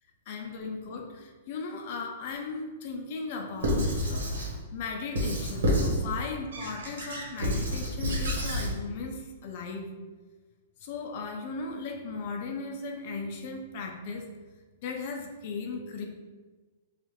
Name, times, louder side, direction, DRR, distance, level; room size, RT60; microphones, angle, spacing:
voice 1, 0.3-4.3 4.7-9.9 10.8-14.3 14.8-16.0, left 4 dB, 45° left, 2 dB, 0.5 m, -37 dB
Squeak / Writing, 3.6-4.5 5.2-6.0 6.5-8.7, equal, 85° right, 1.1 m, -29 dB
4.4 x 2.4 x 3.1 m, 1.3 s
hypercardioid pair, 155°, 0 cm